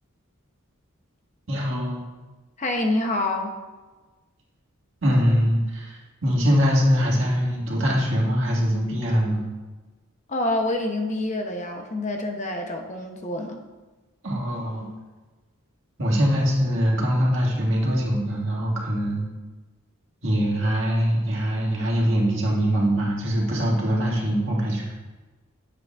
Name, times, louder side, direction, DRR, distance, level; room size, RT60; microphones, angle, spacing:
voice 1, 1.5-2.0 5.0-9.4 14.2-14.9 16.0-19.2 20.2-24.9, equal, 60° right, -3 dB, 1.7 m, -23 dB
voice 2, 2.6-3.5 10.3-13.6, left 2 dB, 35° left, 4 dB, 0.6 m, -27 dB
8.1 x 7.8 x 2.3 m, 1.2 s
head